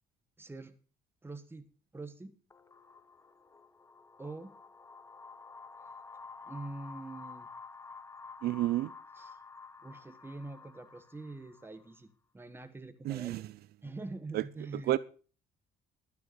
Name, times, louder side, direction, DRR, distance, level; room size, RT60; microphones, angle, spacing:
voice 1, 0.4-0.8 1.2-1.7 1.9-2.3 4.2-4.5 6.5-7.5 9.2-9.4 9.8-13.4 13.8-15.0, right 2 dB, 15° right, 8 dB, 1.4 m, -44 dB
sound 1, 2.5-12.0, left 4 dB, 15° left, 0.7 m, -51 dB
voice 2, 8.4-8.9 13.0-13.5 14.3-14.4 14.9-15.0, right 15 dB, 70° right, 16 dB, 0.5 m, -30 dB
12.5 x 9.5 x 5.2 m, 0.39 s
cardioid pair, 110°, 17 cm